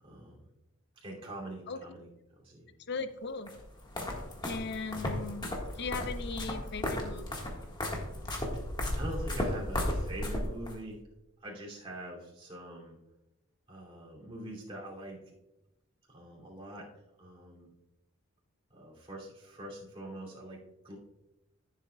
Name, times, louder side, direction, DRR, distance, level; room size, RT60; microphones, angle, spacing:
voice 1, 0.0-0.4 1.0-2.1 2.4-2.7 9.0-11.0 11.4-13.0 13.7-15.3 16.1-16.9 17.2-17.7 18.7-21.0, right 1 dB, 25° right, -3 dB, 2.7 m, -44 dB
voice 2, 2.9-3.5 4.4-7.5, left 4 dB, 50° left, 10 dB, 0.7 m, -38 dB
sound 1, 3.5-10.8, left 1 dB, 20° left, 1.6 m, -35 dB
14.5 x 7.5 x 2.3 m, 0.91 s
head